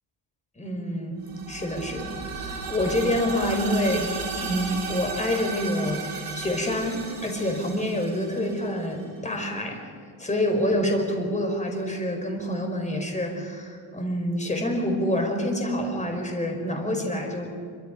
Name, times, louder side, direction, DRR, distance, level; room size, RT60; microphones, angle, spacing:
voice 1, 0.6-6.1 6.3-9.8 10.2-17.5, left 1 dB, 15° left, 3 dB, 4.8 m, -27 dB
sound 1, 1.2-9.0, right 5 dB, 50° right, 6.4 m, -35 dB
25.5 x 25.0 x 5.2 m, 2.2 s
cardioid pair, 125°, 46 cm